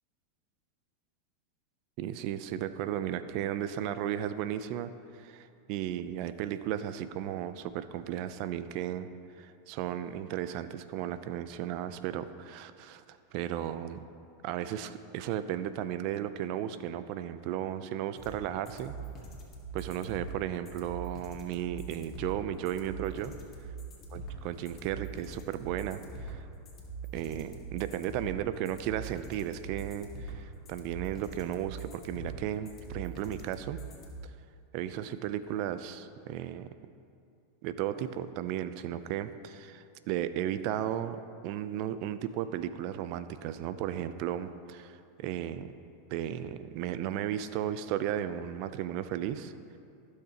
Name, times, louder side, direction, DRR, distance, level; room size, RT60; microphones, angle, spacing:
voice 1, 2.0-9.1 9.4-14.0 14.4-18.9 19.7-23.3 24.1-26.4 27.1-33.8 34.7-36.7 37.6-45.7 46.1-49.5, right 11 dB, 55° right, 12 dB, 0.5 m, -35 dB
sound 1, 18.2-34.2, right 3 dB, 35° left, 2.0 m, -43 dB
15.5 x 6.5 x 2.9 m, 2.5 s
hypercardioid pair, 110°, 0 cm